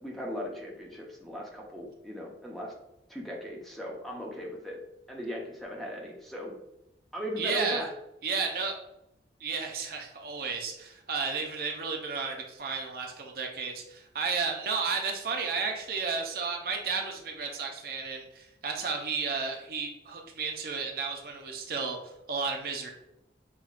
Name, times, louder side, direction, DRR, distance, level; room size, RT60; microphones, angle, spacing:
voice 1, 0.0-2.7 3.1-4.8 5.1-6.5 7.1-7.9, equal, ahead, -2 dB, 0.6 m, -38 dB
voice 2, 7.4-7.9 8.2-8.8 9.4-22.0 22.3-22.9, right 5 dB, 55° right, 2 dB, 0.5 m, -33 dB
5.6 x 2.3 x 2.4 m, 0.86 s
head